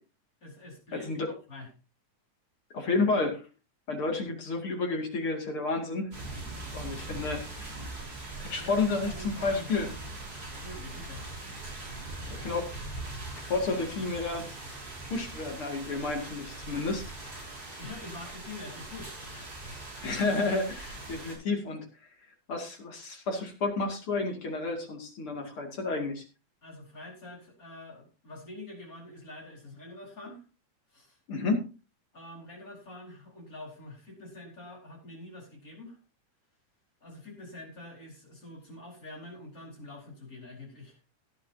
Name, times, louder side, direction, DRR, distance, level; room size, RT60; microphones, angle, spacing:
voice 1, 0.4-1.7 8.6-8.8 9.1-9.7 10.6-11.2 17.8-19.5 26.6-30.4 30.9-31.2 32.1-36.0 37.0-41.0, left 2 dB, 25° left, -1 dB, 4.9 m, -46 dB
voice 2, 0.9-1.3 2.7-3.5 3.9-6.1 6.7-7.7 8.5-9.9 12.3-12.7 13.5-14.5 15.1-17.0 20.0-21.8 22.5-26.2 31.3-31.7, left 3 dB, 45° left, 3 dB, 3.0 m, -31 dB
sound 1, 6.1-21.3, right 2 dB, 30° right, 6.8 m, -41 dB
17.5 x 10.5 x 2.8 m, 0.32 s
omnidirectional pair, 3.5 m